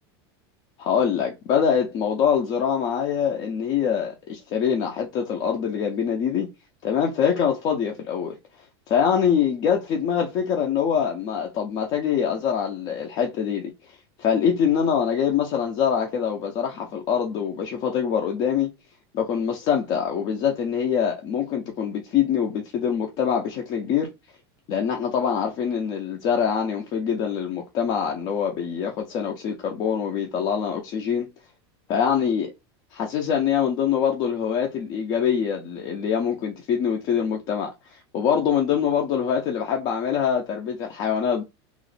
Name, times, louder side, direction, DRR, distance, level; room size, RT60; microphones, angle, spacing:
voice 1, 0.8-6.5 6.8-8.4 8.9-13.7 14.2-18.7 19.1-24.1 24.7-31.3 31.9-32.5 32.9-41.4, left 7 dB, 30° left, 0.4 m, -24 dB
2.9 x 2.5 x 4.0 m
supercardioid pair, 175°, 14 cm